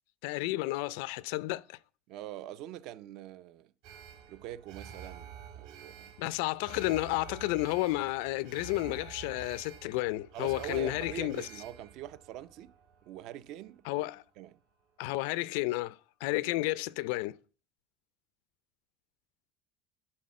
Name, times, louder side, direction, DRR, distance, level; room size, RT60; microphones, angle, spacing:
voice 1, 0.2-1.8 6.2-11.5 13.9-14.2 15.0-17.4, left 18 dB, 80° left, 0.4 m, -32 dB
voice 2, 2.1-3.7 4.3-6.1 10.3-12.7 13.1-14.0 14.4-14.6, right 13 dB, 55° right, 0.5 m, -44 dB
Alarm, 3.8-14.1 14.4-14.5, right 8 dB, 75° right, 2.0 m, -49 dB
11.0 x 4.2 x 7.5 m
cardioid pair, 165°, 0 cm